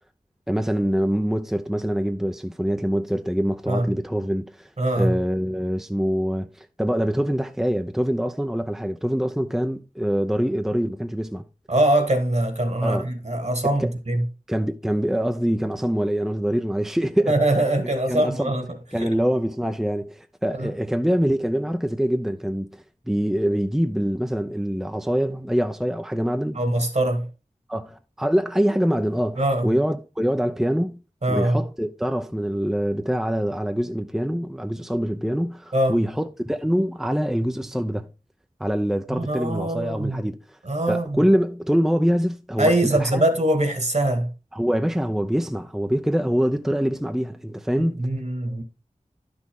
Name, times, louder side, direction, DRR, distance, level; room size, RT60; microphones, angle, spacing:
voice 1, 0.5-4.7 5.0-11.4 12.8-13.1 13.6-13.9 14.5-17.4 18.1-18.5 18.9-26.6 27.7-31.0 31.3-38.1 38.6-40.6 40.9-43.2 44.5-48.0, equal, 5° right, 0.7 m, -24 dB
voice 2, 4.8-5.1 11.7-14.3 17.3-18.7 19.0-19.1 20.6-20.7 26.5-27.3 29.4-29.7 31.2-31.6 35.7-36.0 39.1-40.2 40.6-41.2 42.6-44.3 47.8-48.6, right 1 dB, 55° right, 2.0 m, -22 dB
11.5 x 6.2 x 3.7 m
wide cardioid pair, 50°, 14 cm